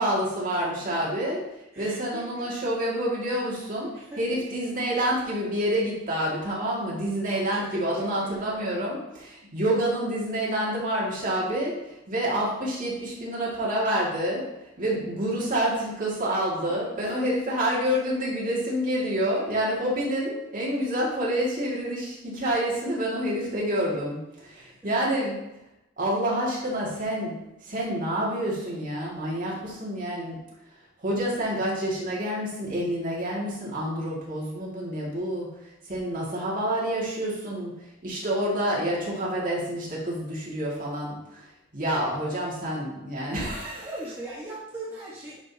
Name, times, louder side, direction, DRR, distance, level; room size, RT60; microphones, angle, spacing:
voice 1, 0.0-1.4 1.8-14.5 14.8-25.4 26.0-30.4 31.0-37.7 38.0-41.4 41.7-43.9, right 1 dB, 40° right, -5 dB, 2.3 m, -28 dB
voice 2, 1.7-2.4 3.9-4.4 7.3-8.7 16.7-17.3 24.5-24.9 43.8-45.4, right 1 dB, 10° right, -9 dB, 1.6 m, -41 dB
10.5 x 5.2 x 2.9 m, 0.91 s
head